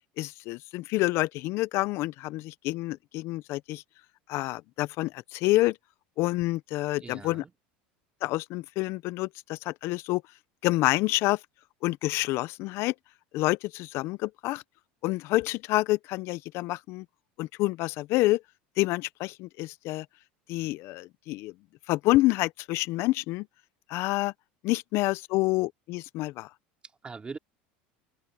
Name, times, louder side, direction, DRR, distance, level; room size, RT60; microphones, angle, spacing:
voice 1, 0.2-3.8 4.3-5.7 6.2-7.4 8.2-10.2 10.6-11.4 11.8-12.9 13.3-14.6 15.0-17.0 17.4-18.4 18.8-20.0 20.5-21.5 21.9-23.4 23.9-24.3 24.6-26.5, left 19 dB, 60° left, 0.6 m, -28 dB
voice 2, 7.0-7.5 26.8-27.4, right 4 dB, 20° right, 2.7 m, -42 dB
open air
supercardioid pair, 105°, 5 cm